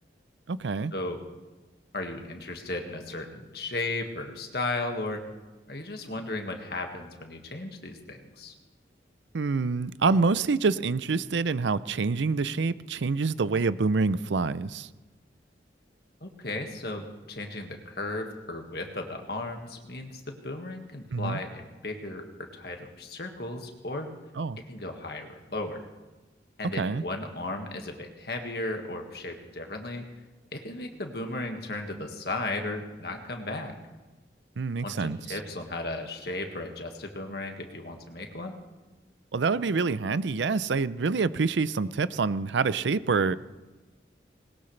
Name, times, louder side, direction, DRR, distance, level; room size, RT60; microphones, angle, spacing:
voice 1, 0.5-0.9 9.3-14.9 21.1-21.4 24.4-24.6 26.8-27.0 34.6-35.4 39.3-43.3, right 4 dB, 80° right, 16 dB, 0.5 m, -26 dB
voice 2, 1.9-5.2 5.7-8.5 16.2-24.1 24.7-25.8 26.6-30.0 30.5-33.8 34.8-38.5, left 2 dB, 60° left, 3 dB, 1.8 m, -35 dB
20.0 x 19.5 x 3.3 m, 1.2 s
head